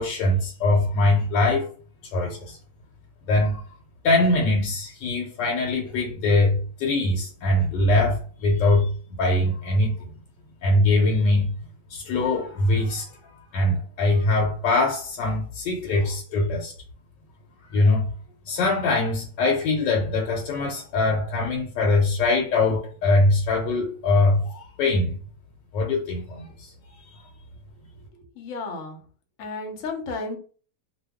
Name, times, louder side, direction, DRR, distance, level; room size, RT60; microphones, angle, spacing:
voice 1, 0.0-1.7 2.1-2.6 3.3-3.6 4.0-8.9 9.2-10.1 10.6-11.5 11.9-13.1 13.5-16.7 17.7-18.1 18.5-25.1 25.7-26.7, left 2 dB, 80° left, 1.3 m, -22 dB
voice 2, 28.3-29.0 29.4-30.4, left 3 dB, 55° left, 0.9 m, -32 dB
2.8 x 2.3 x 3.4 m
omnidirectional pair, 1.9 m